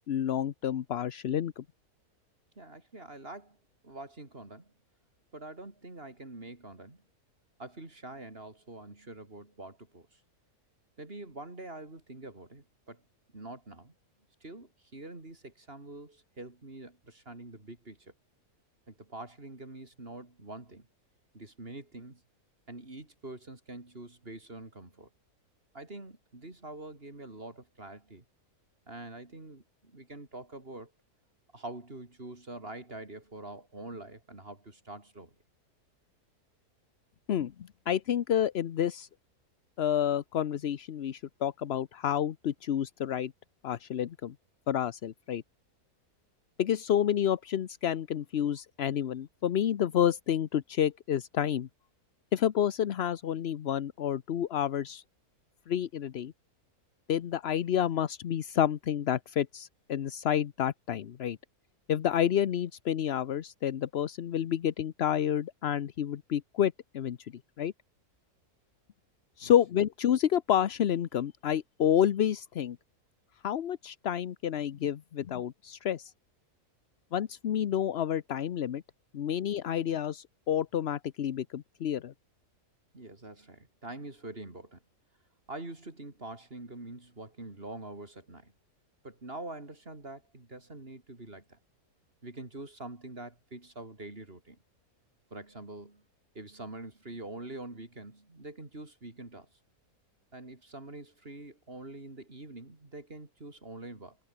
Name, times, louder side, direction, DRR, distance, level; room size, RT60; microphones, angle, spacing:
voice 1, 0.0-1.6 37.3-39.1 39.8-43.3 43.6-44.3 44.7-45.4 46.6-51.7 52.3-55.0 55.7-56.3 57.1-61.4 61.9-67.3 67.6-67.7 69.4-72.8 73.4-76.1 77.1-78.8 79.1-82.1, left 10 dB, 50° left, 0.8 m, -29 dB
voice 2, 2.6-3.6 3.8-4.7 5.3-7.0 7.6-10.2 11.0-13.0 13.3-13.9 14.4-18.1 18.9-20.9 21.3-22.2 22.7-25.1 25.7-28.2 28.9-30.9 31.5-35.4 69.4-69.5 82.9-84.8 85.5-88.5 89.0-91.6 92.2-94.6 95.3-96.0 96.3-99.5 100.3-104.2, right 2 dB, 35° right, 4.1 m, -45 dB
omnidirectional pair, 1.6 m